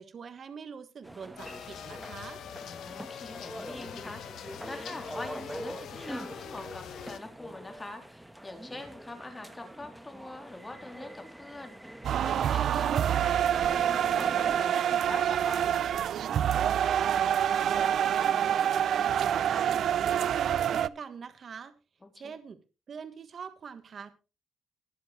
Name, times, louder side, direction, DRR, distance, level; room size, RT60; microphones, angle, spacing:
voice 1, 0.0-2.4 16.5-17.3 17.7-21.7 22.1-22.6 22.9-24.1, right 6 dB, 50° right, 10 dB, 1.3 m, -44 dB
sound 1, 1.0-14.7, right 1 dB, 5° right, 1.2 m, -44 dB
sound 2, 1.4-7.2, left 9 dB, 75° left, 1.0 m, -44 dB
voice 2, 2.6-11.9 12.2-15.7 22.0-22.3, left 2 dB, 20° left, 4 dB, 3.3 m, -44 dB
sound 3, 12.0-20.9, right 9 dB, 65° right, 0.5 m, -26 dB
20.5 x 7.6 x 3.2 m, 0.31 s
cardioid pair, 90°, 0 cm